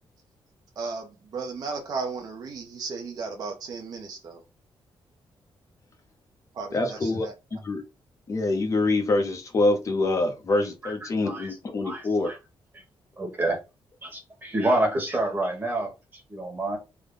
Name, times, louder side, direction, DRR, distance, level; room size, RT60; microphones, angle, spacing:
voice 1, 0.8-4.4 6.5-7.3, right 4 dB, 45° right, 0.6 m, -35 dB
voice 2, 6.7-7.3 7.6-7.8 8.3-12.3, left 2 dB, 35° left, 0.7 m, -25 dB
voice 3, 11.2-11.5 11.8-12.4 12.7-12.8 13.2-13.6 14.0-16.8, right 1 dB, 20° right, 1.2 m, -28 dB
3.5 x 2.2 x 3.6 m
wide cardioid pair, 175°, 9 cm